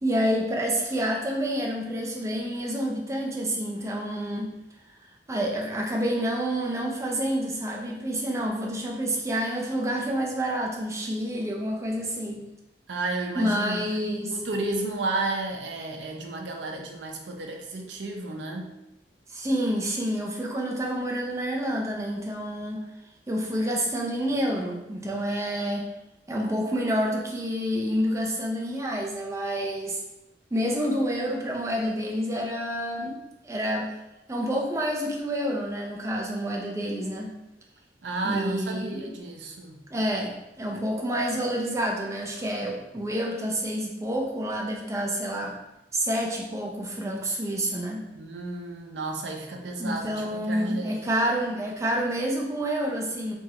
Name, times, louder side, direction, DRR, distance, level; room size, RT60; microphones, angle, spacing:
voice 1, 0.0-4.5 5.3-12.5 13.4-14.4 19.3-22.8 23.3-25.9 26.3-30.0 30.5-33.2 33.4-33.9 34.3-37.4 38.2-39.1 39.9-45.6 45.9-48.0 49.8-53.3, equal, 15° right, 0 dB, 0.4 m, -28 dB
voice 2, 12.9-13.8 14.4-18.7 38.0-39.8 48.2-51.0, right 2 dB, 80° right, 2 dB, 0.5 m, -32 dB
3.0 x 2.3 x 2.8 m, 0.95 s
head